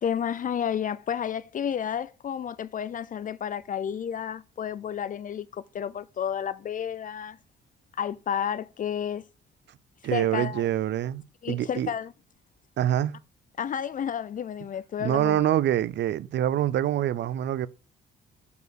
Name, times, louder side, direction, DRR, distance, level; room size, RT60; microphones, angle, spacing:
voice 1, 0.0-7.4 8.0-9.2 10.1-10.7 11.4-12.1 13.6-15.4, left 8 dB, 45° left, 0.4 m, -31 dB
voice 2, 10.0-11.2 11.5-11.9 12.8-13.2 15.0-17.7, right 12 dB, 65° right, 0.5 m, -25 dB
5.4 x 4.6 x 6.2 m
cardioid pair, 90°, 20 cm